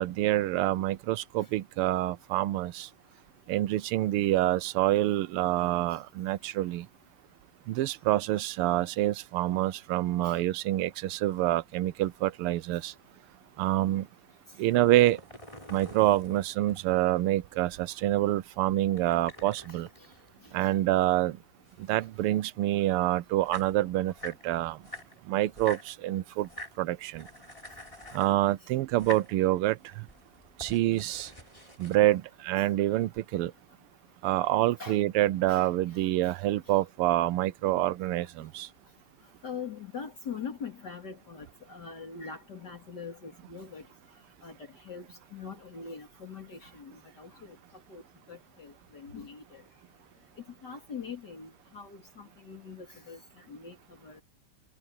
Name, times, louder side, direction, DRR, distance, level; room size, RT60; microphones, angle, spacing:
voice 1, 0.0-2.9 3.5-6.9 7.7-12.9 13.6-14.1 14.6-15.2 15.7-19.9 20.5-21.4 21.8-24.8 25.3-26.5 26.8-27.3 28.1-30.0 30.6-31.3 31.8-33.5 34.2-38.7, right 15 dB, 85° right, 1.6 m, -27 dB
sound 1, 14.6-17.1 18.9-21.0 21.3-22.5 23.1-23.2 23.3-24.4 24.8-25.9 26.4-26.8 27.1-28.4 28.9-29.3 29.9-32.0, left 2 dB, 15° left, 5.1 m, -46 dB
voice 2, 39.4-43.8 44.4-45.1 45.3-46.9 47.2-47.6 47.9-48.0 48.3-49.6 50.6-53.2 53.5-53.8 54.0-54.2, left 6 dB, 50° left, 2.8 m, -42 dB
omnidirectional pair, 2.4 m